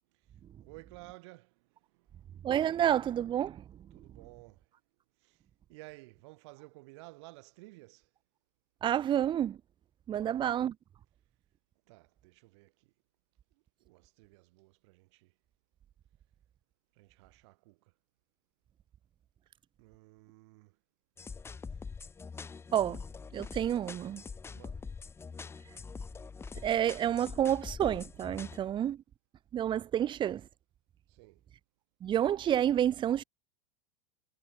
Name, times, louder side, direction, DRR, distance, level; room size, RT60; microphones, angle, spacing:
voice 1, 0.1-2.4 3.9-4.7 5.2-8.1 10.1-10.4 11.9-12.9 13.8-15.3 16.9-17.9 19.8-20.8 21.7-21.8 24.5-24.9 31.1-31.4, right 25 dB, 55° right, 7.9 m, -55 dB
voice 2, 2.4-3.6 8.8-9.6 10.1-10.7 22.7-23.0 23.3-24.2 26.6-29.0 29.5-30.5 32.0-33.2, right 10 dB, 30° right, 1.0 m, -29 dB
sound 1, 21.2-28.6, left 5 dB, 15° left, 0.9 m, -44 dB
figure-of-eight pair, 85°, 17 cm